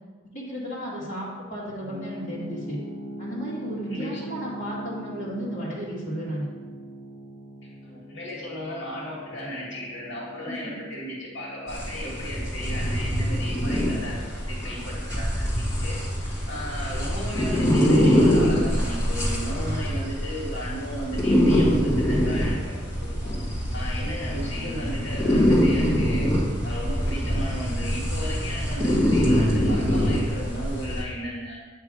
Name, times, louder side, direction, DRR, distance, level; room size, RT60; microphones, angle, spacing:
voice 1, 0.3-2.8 3.2-6.5 10.5-10.7, equal, 35° left, -8 dB, 1.7 m, -34 dB
sound 1, 1.8-16.6, right 1 dB, 40° right, 2.0 m, -42 dB
voice 2, 3.9-4.3 7.6-23.3 23.7-26.3 26.6-31.6, equal, 65° left, -5 dB, 1.8 m, -35 dB
sound 2, 11.7-31.0, equal, 15° left, 1.5 m, -24 dB
8.5 x 3.0 x 4.8 m, 1.4 s
head